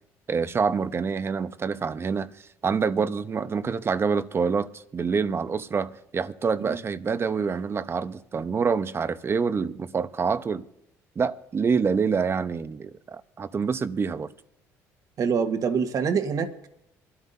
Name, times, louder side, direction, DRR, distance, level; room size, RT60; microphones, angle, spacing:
voice 1, 0.3-2.3 2.6-10.6 11.2-14.3, right 5 dB, 35° right, 0.9 m, -26 dB
voice 2, 15.2-16.7, right 6 dB, 55° right, 1.6 m, -25 dB
25.0 x 13.0 x 2.8 m
supercardioid pair, 75°, 7 cm